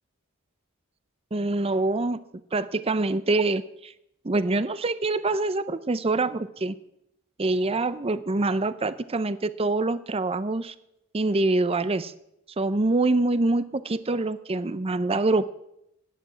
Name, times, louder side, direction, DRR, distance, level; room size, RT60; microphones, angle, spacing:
voice 1, 1.3-2.2 2.5-3.9 4.2-6.8 7.4-10.7 11.1-12.1 12.6-15.5, right 2 dB, 25° right, 15 dB, 0.6 m, -25 dB
13.0 x 10.0 x 8.2 m, 0.82 s
head